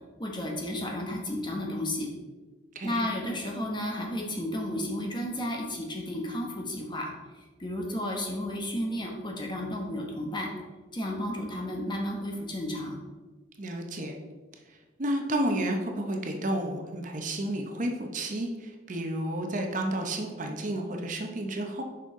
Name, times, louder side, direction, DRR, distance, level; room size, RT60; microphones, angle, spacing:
voice 1, 0.2-2.1 2.8-7.1 7.6-10.5 10.9-13.0, left 1 dB, 25° left, 0 dB, 1.0 m, -32 dB
voice 2, 13.6-14.1 14.7-21.8, right 1 dB, 45° right, 3 dB, 0.7 m, -31 dB
6.7 x 5.4 x 3.7 m, 1.3 s
head